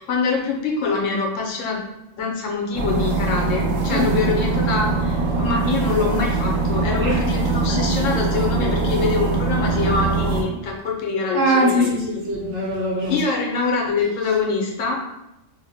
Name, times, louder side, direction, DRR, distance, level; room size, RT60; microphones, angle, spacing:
voice 1, 0.0-1.8 2.2-12.0 13.1-15.0, left 4 dB, 80° left, -1 dB, 1.0 m, -24 dB
sound 1, 2.7-10.4, right 3 dB, 85° right, 1.1 m, -22 dB
voice 2, 11.3-13.2, equal, 65° right, -2 dB, 1.1 m, -21 dB
2.8 x 2.0 x 4.0 m, 0.90 s
omnidirectional pair, 1.3 m